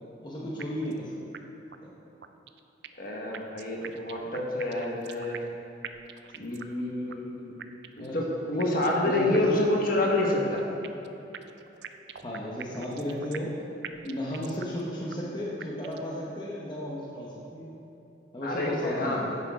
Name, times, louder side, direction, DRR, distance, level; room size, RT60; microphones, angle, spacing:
voice 1, 0.2-1.1 1.8-1.9 8.0-8.2 9.0-9.6 12.2-13.6 14.0-17.7 18.3-19.4, equal, 25° left, -5 dB, 1.1 m, -34 dB
sound 1, 0.6-1.0 1.3-1.4 1.7-1.8 2.2-3.1 3.3-5.6 5.8-6.8 7.1-7.2 7.6-8.1 8.6-9.0 9.3-9.4 9.7-9.8 10.2-11.1 11.3-13.6 13.8-14.8 15.1-15.2 15.6-16.1, right 8 dB, 65° right, 0.4 m, -43 dB
voice 2, 3.0-5.4 6.3-7.5 8.0-10.6 18.4-19.2, left 2 dB, 50° left, -2 dB, 1.4 m, -28 dB
10.5 x 8.9 x 3.7 m, 3.0 s
head